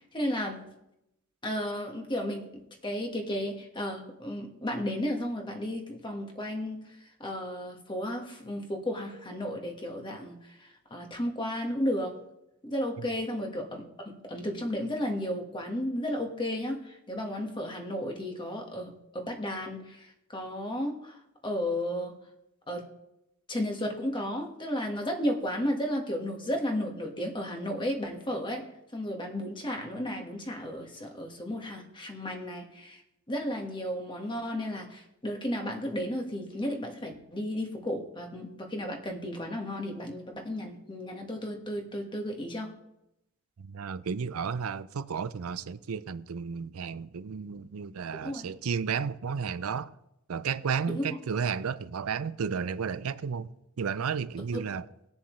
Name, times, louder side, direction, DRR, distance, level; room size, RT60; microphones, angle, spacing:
voice 1, 0.1-0.6 1.4-2.5 2.8-6.8 7.2-10.4 10.9-12.1 12.6-21.2 21.4-22.1 22.7-22.9 23.5-28.7 28.9-33.0 33.3-42.7 48.1-48.4 50.9-51.0, equal, 25° left, 1.5 m, -33 dB
voice 2, 43.6-49.9 50.3-53.5 53.8-54.9, right 6 dB, 85° right, 0.5 m, -33 dB
20.0 x 7.1 x 3.2 m
head